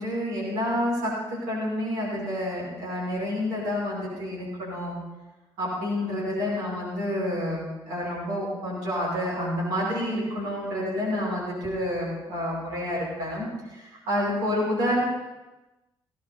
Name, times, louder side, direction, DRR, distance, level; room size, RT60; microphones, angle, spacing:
voice 1, 0.0-5.0 5.6-15.0, left 1 dB, 65° right, -5 dB, 5.8 m, -29 dB
17.0 x 12.5 x 4.2 m, 1.1 s
figure-of-eight pair, 45°, 14 cm